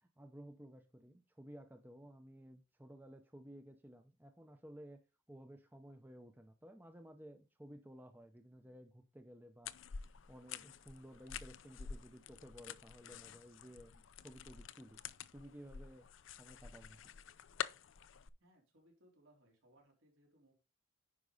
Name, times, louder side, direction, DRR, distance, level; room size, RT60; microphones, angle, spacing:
voice 1, 0.0-5.0 5.3-9.7 10.1-17.1, equal, 10° right, 0.6 m, -56 dB
sound 1, 9.6-18.3, left 7 dB, 70° left, 0.5 m, -49 dB
voice 2, 18.4-20.5, right 1 dB, 75° right, 3.6 m, -68 dB
9.8 x 5.3 x 3.9 m
head